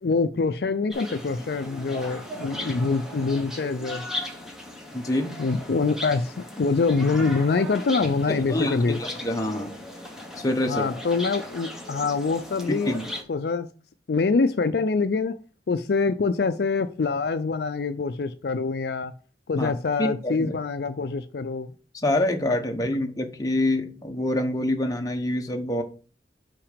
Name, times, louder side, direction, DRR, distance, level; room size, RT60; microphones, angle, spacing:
voice 1, 0.0-4.0 5.4-9.0 10.7-12.9 13.3-13.7 14.1-15.3 15.7-19.1 19.5-21.7, left 4 dB, 60° left, 10 dB, 0.4 m, -25 dB
sound 1, 0.9-13.2, left 1 dB, 5° right, 1.1 m, -37 dB
voice 2, 4.9-5.4 8.3-9.8 10.4-10.9 12.7-13.1 19.6-19.7 20.0-20.5 21.9-25.8, left 1 dB, 20° left, 3 dB, 0.9 m, -26 dB
5.8 x 4.8 x 5.1 m, 0.37 s
head